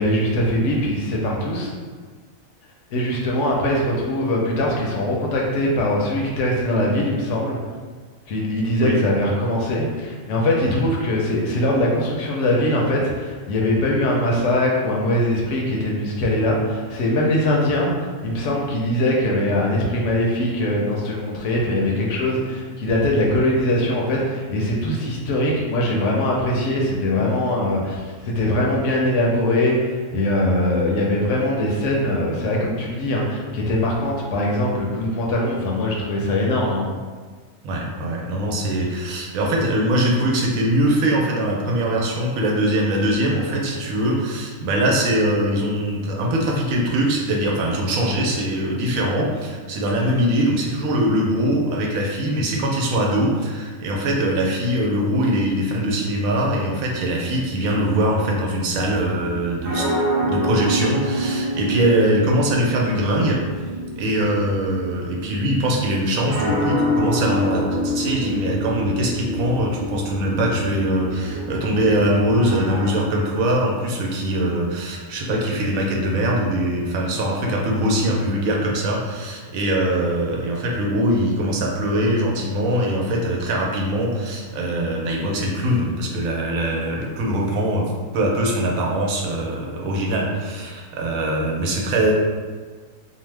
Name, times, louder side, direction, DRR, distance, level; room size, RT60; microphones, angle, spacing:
voice 1, 0.0-1.7 2.9-7.6 8.3-36.9, left 1 dB, 70° left, -2 dB, 0.9 m, -22 dB
voice 2, 37.6-59.9 60.2-63.4 64.0-87.8 88.1-92.1, right 1 dB, 85° right, -1 dB, 1.0 m, -22 dB
sound 1, 58.7-72.9, equal, 60° right, 0.9 m, -27 dB
2.7 x 2.0 x 3.2 m, 1.5 s
omnidirectional pair, 1.4 m